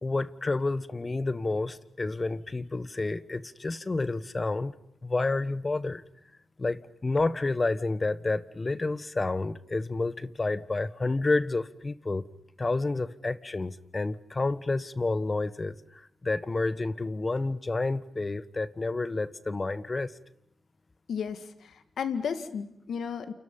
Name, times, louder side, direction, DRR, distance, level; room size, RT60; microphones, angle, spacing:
voice 1, 0.0-4.8 5.0-6.0 6.6-12.2 12.6-20.1, left 3 dB, 35° left, 14 dB, 1.4 m, -30 dB
voice 2, 21.1-23.3, left 6 dB, 80° left, 10 dB, 1.9 m, -33 dB
29.5 x 29.0 x 5.6 m, 0.77 s
cardioid pair, 50°, 0 cm